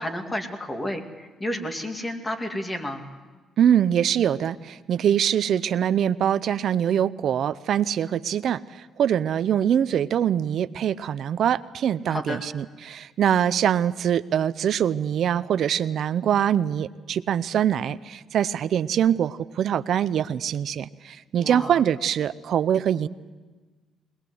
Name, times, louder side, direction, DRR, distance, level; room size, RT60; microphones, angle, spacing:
voice 1, 0.0-3.0 12.1-12.4 21.4-21.7, left 1 dB, 20° left, 5 dB, 2.4 m, -31 dB
voice 2, 3.6-23.1, right 9 dB, 65° right, 15 dB, 0.6 m, -23 dB
21.5 x 19.5 x 7.9 m, 1.3 s
cardioid pair, 90°, 0 cm